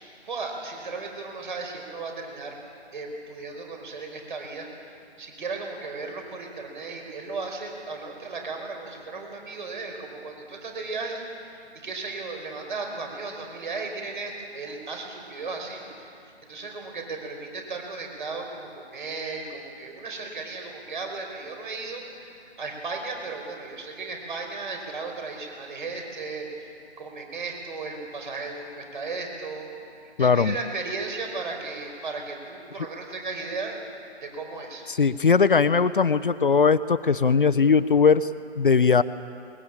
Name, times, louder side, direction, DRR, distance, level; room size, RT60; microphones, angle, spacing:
voice 1, 0.2-2.5 2.9-4.9 5.2-11.5 11.8-16.1 16.5-26.7 27.0-29.7 30.2-33.7 34.2-34.8, right 3 dB, 45° right, 3 dB, 5.0 m, -35 dB
voice 2, 30.2-30.5 34.9-38.3 38.6-39.0, left 5 dB, 50° left, 13 dB, 0.8 m, -19 dB
22.5 x 21.0 x 8.8 m, 2.6 s
figure-of-eight pair, 155°, 34 cm